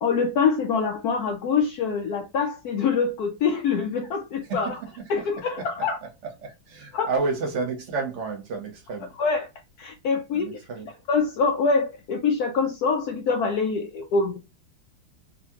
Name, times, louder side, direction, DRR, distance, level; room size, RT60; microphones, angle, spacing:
voice 1, 0.0-4.8 5.1-6.0 6.9-7.1 9.2-9.5 9.8-10.6 11.1-14.4, left 5 dB, 85° left, 0.8 m, -25 dB
voice 2, 6.4-9.1 10.3-10.9, right 4 dB, 50° right, 1.0 m, -30 dB
4.0 x 2.5 x 2.8 m
omnidirectional pair, 2.2 m